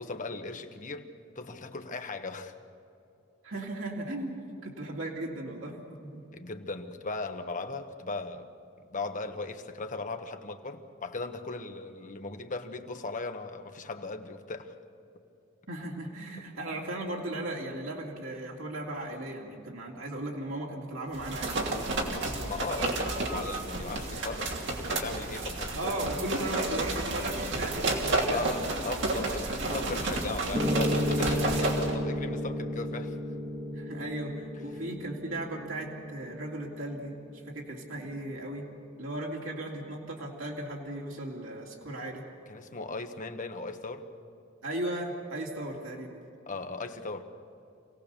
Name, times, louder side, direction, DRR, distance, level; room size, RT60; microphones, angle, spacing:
voice 1, 0.0-2.6 6.3-8.5 8.8-14.8 22.4-26.0 28.3-33.2 42.5-44.1 46.5-47.2, left 3 dB, 40° left, 6 dB, 1.3 m, -38 dB
voice 2, 3.4-6.2 15.7-21.6 25.8-28.4 33.7-38.7 39.0-42.2 44.6-46.2, right 1 dB, 85° right, -2 dB, 2.9 m, -36 dB
sound 1, 21.1-32.0, right 2 dB, 65° right, 3.0 m, -31 dB
Piano, 30.5-38.6, equal, 25° right, 2.5 m, -33 dB
27.0 x 17.5 x 7.0 m, 2.8 s
head